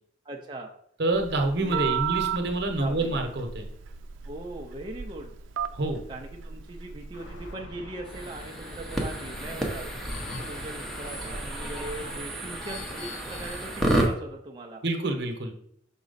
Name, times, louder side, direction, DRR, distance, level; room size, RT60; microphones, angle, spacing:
voice 1, 0.2-0.7 1.6-2.0 2.8-3.2 4.2-5.3 6.1-9.9 10.4-14.8, right 1 dB, 25° right, 0 dB, 0.5 m, -40 dB
voice 2, 1.0-3.6 5.7-6.0 14.8-15.5, right 2 dB, 60° right, 4 dB, 1.0 m, -27 dB
Telephone, 1.1-7.5, right 8 dB, 80° right, 0.4 m, -34 dB
sound 1, 7.1-12.2, equal, 80° left, 0.9 m, -43 dB
sound 2, 8.0-14.1, right 1 dB, ahead, 0.8 m, -31 dB
6.0 x 4.2 x 4.0 m, 0.67 s
head